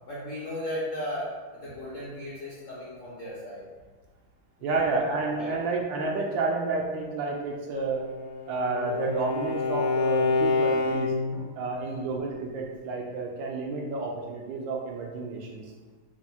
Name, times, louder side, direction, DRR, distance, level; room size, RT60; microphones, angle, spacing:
voice 1, 0.1-3.6 4.6-4.8 5.3-5.6 11.8-12.1, left 1 dB, 55° left, -8 dB, 0.9 m, -36 dB
voice 2, 4.6-8.1 8.5-11.1 11.6-15.6, right 3 dB, 75° right, 0 dB, 1.2 m, -30 dB
Bowed string instrument, 7.9-11.5, left 3 dB, 90° left, 1.4 m, -27 dB
4.7 x 2.1 x 4.0 m, 1.4 s
omnidirectional pair, 2.2 m